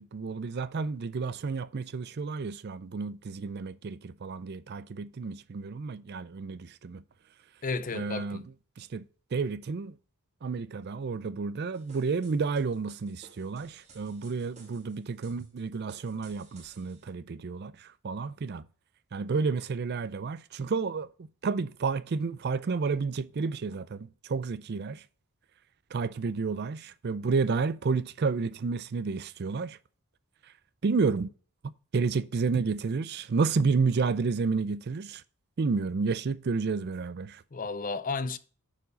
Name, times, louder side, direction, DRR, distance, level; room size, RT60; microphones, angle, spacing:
voice 1, 0.0-7.0 7.9-8.4 8.8-9.0 9.3-9.9 10.4-18.6 19.1-21.1 21.4-25.0 25.9-29.8 30.8-31.3 31.9-35.2 35.6-37.4, right 4 dB, 45° right, 0.4 m, -30 dB
voice 2, 7.6-8.4 37.5-38.4, left 4 dB, 35° left, 0.6 m, -33 dB
sound 1, 11.7-17.1, right 4 dB, 30° right, 2.5 m, -57 dB
10.5 x 4.7 x 4.9 m
head